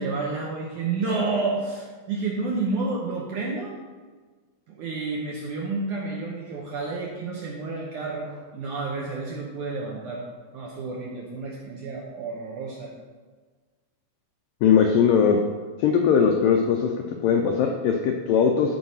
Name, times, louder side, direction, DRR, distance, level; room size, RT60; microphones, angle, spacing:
voice 1, 0.0-3.8 4.7-10.2 10.5-12.9, right 3 dB, 70° right, -2 dB, 1.9 m, -30 dB
voice 2, 14.6-15.4 15.8-16.9 17.2-18.8, left 7 dB, 85° left, 3 dB, 1.9 m, -20 dB
13.5 x 4.7 x 5.6 m, 1.4 s
omnidirectional pair, 4.9 m